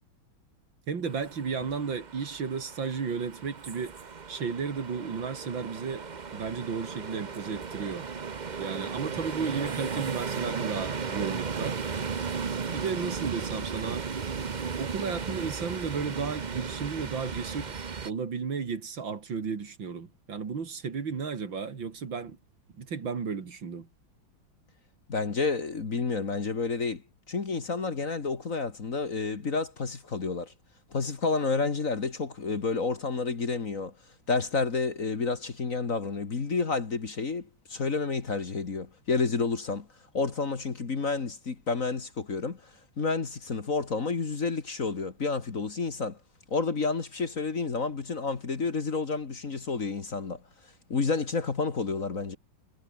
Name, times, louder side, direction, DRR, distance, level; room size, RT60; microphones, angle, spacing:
voice 1, 0.9-4.0 4.3-6.0 6.3-8.1 8.6-11.8 12.7-14.1 14.8-17.7 18.1-22.4 22.8-23.9, right 5 dB, 65° right, 3.2 m, -33 dB
sound 1, 1.0-18.1, right 5 dB, 40° right, 0.6 m, -35 dB
voice 2, 25.1-27.0 27.3-30.5 30.9-33.9 34.3-39.9 40.1-42.6 43.0-46.2 46.5-50.4 50.9-52.4, left 4 dB, 40° left, 2.2 m, -30 dB
omnidirectional pair, 2.2 m